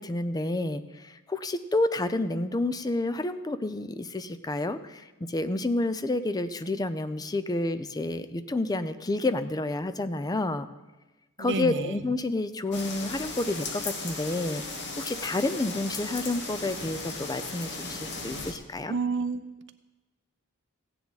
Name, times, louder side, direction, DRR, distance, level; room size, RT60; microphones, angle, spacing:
voice 1, 0.0-10.7 11.4-14.6 15.0-18.9, left 2 dB, 15° left, 12 dB, 0.5 m, -29 dB
voice 2, 11.4-12.0 18.9-19.4, right 4 dB, 55° right, 9 dB, 0.7 m, -29 dB
sound 1, 12.7-18.5, left 3 dB, 55° left, 1.3 m, -36 dB
15.5 x 9.5 x 4.0 m, 1.1 s
head